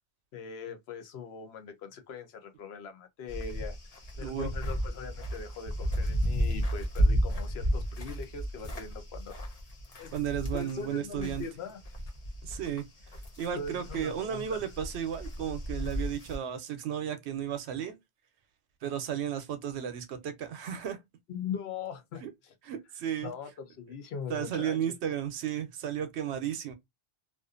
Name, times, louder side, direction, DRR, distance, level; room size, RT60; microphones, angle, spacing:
voice 1, 0.3-3.8 4.2-9.4 10.0-10.1 10.5-11.8 13.5-14.6 21.3-22.5 23.2-24.8, left 5 dB, 70° left, 0.8 m, -41 dB
sound 1, 3.3-11.5 11.8-16.4, equal, 40° left, 0.6 m, -33 dB
voice 2, 10.1-11.4 12.4-12.8 13.4-18.0 18.8-21.0 22.2-22.3 22.7-23.3 24.3-26.7, right 9 dB, 75° right, 0.8 m, -34 dB
2.5 x 2.4 x 2.3 m
omnidirectional pair, 1.2 m